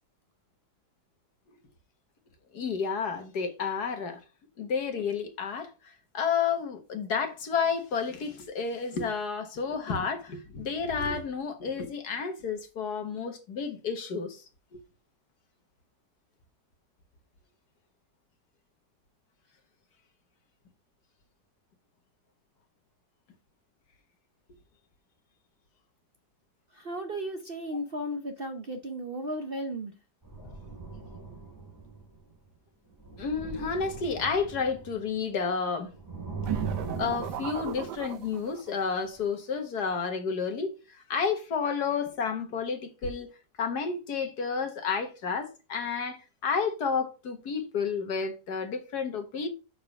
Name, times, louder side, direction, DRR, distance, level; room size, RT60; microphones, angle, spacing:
voice 1, 2.5-4.2 4.6-5.7 6.1-14.4 14.7-14.8 30.4-30.5 33.2-35.9 37.0-40.7 41.1-43.3 43.6-49.5, left 5 dB, 65° left, 1.8 m, -31 dB
voice 2, 26.7-29.9, equal, 45° right, 0.8 m, -35 dB
sound 1, 30.2-32.4 32.9-35.5 35.9-38.4 39.2-39.3, right 4 dB, 10° right, 2.9 m, -40 dB
sound 2, 36.4-38.8, right 12 dB, 70° right, 1.3 m, -36 dB
6.7 x 4.8 x 5.3 m
omnidirectional pair, 1.9 m